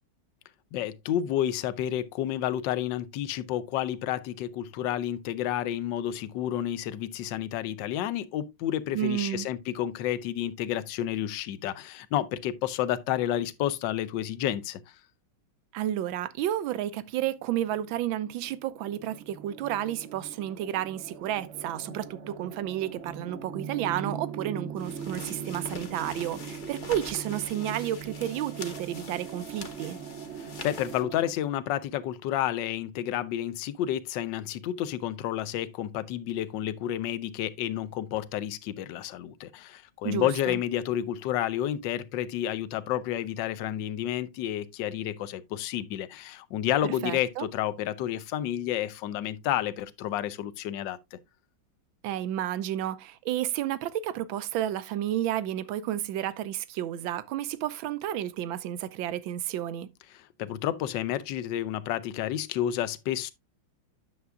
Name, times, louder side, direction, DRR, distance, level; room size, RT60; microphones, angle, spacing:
voice 1, 0.7-14.8 30.6-51.2 60.1-63.3, left 11 dB, 70° left, 1.3 m, -30 dB
voice 2, 8.9-9.5 15.7-30.0 40.0-40.6 46.8-47.5 52.0-59.9, right 12 dB, 80° right, 1.4 m, -31 dB
sound 1, 17.9-18.0 18.2-31.3, right 6 dB, 55° right, 0.8 m, -41 dB
sound 2, 24.8-31.0, left 4 dB, 40° left, 0.7 m, -44 dB
9.5 x 6.8 x 2.4 m
omnidirectional pair, 2.2 m